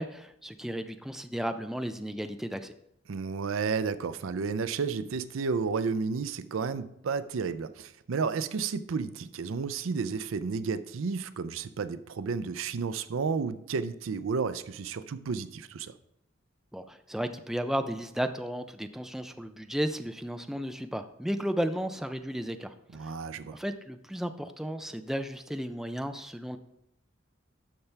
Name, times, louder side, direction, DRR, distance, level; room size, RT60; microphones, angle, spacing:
voice 1, 0.0-2.7 16.7-22.7 23.0-23.1 23.5-26.6, equal, ahead, 8 dB, 0.4 m, -34 dB
voice 2, 3.1-15.9 22.9-23.6, right 5 dB, 75° right, 13 dB, 0.5 m, -32 dB
12.0 x 5.8 x 3.3 m, 0.78 s
head